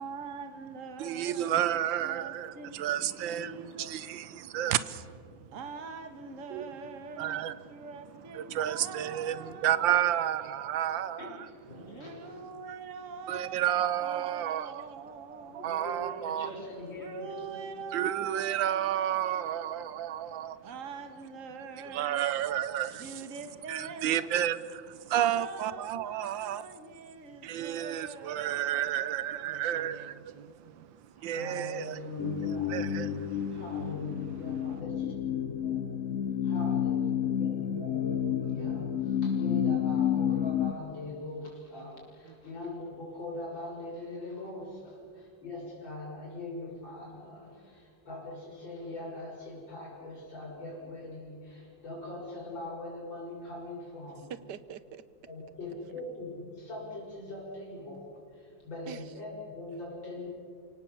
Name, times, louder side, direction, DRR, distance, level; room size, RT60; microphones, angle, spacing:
voice 1, 0.0-1.6 2.0-3.9 5.5-9.9 11.8-15.7 17.0-19.9 20.6-22.3 23.0-24.3 25.1-29.8, right 4 dB, 45° right, 1.8 m, -44 dB
voice 2, 1.0-5.1 6.5-6.6 7.2-7.5 8.3-11.4 13.3-16.5 17.9-20.6 21.9-23.2 23.7-26.6 27.4-30.1 31.2-32.0 32.7-33.6, right 11 dB, 90° right, 1.6 m, -31 dB
voice 3, 10.2-10.8 14.2-14.9 29.4-31.0 42.2-42.4 54.3-55.0 58.9-59.1, right 8 dB, 70° right, 1.4 m, -48 dB
voice 4, 11.2-12.4 15.5-17.8 22.9-23.1 27.2-27.4 31.2-32.9 33.5-35.1 35.6-35.8 36.4-54.3 55.3-60.3, left 1 dB, 90° left, 6.7 m, -42 dB
sound 1, 32.2-40.7, left 9 dB, 55° left, 0.9 m, -30 dB
29.0 x 18.0 x 7.1 m
omnidirectional pair, 2.0 m